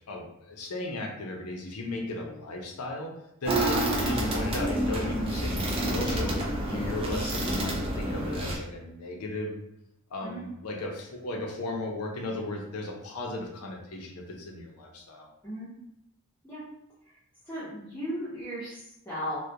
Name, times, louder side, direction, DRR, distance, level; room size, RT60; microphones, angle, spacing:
voice 1, 0.1-3.1 3.4-9.6 10.1-15.3, left 2 dB, 90° left, 1 dB, 0.5 m, -36 dB
sound 1, 3.5-8.6, right 1 dB, 25° right, 0.3 m, -28 dB
voice 2, 17.5-19.4, equal, 10° left, -13 dB, 0.7 m, -36 dB
2.3 x 2.1 x 2.7 m, 0.79 s
head